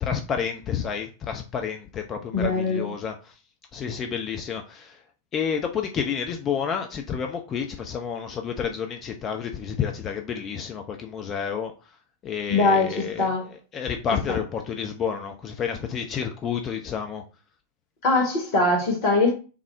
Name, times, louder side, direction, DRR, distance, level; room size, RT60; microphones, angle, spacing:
voice 1, 0.0-3.3 3.7-5.0 5.3-12.0 12.2-17.2, left 7 dB, 30° left, 0.4 m, -30 dB
voice 2, 2.3-2.9 12.5-12.9 13.2-13.4 18.0-19.3, left 3 dB, 45° left, 1.2 m, -21 dB
3.6 x 2.0 x 4.3 m
figure-of-eight pair, 90°, 0 cm